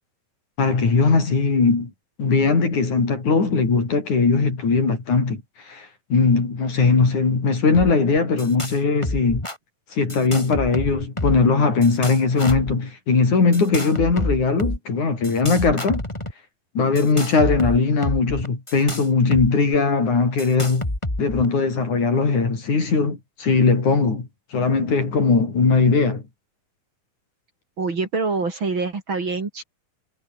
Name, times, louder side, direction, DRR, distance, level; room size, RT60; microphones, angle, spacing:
voice 1, 0.6-1.9 2.2-5.4 5.7-9.5 9.9-16.0 16.8-20.9 21.2-26.2, left 4 dB, 70° left, 7.1 m, -20 dB
sound 1, 7.7-7.9 8.2-8.8 9.0-9.6 10.1-11.5 11.8-12.7 13.5-14.8 15.2-16.3 17.0-19.5 19.7-19.8 20.4-21.5, left 1 dB, 10° left, 3.9 m, -28 dB
voice 2, 27.8-29.6, right 4 dB, 40° right, 3.7 m, -25 dB
omnidirectional pair, 3.6 m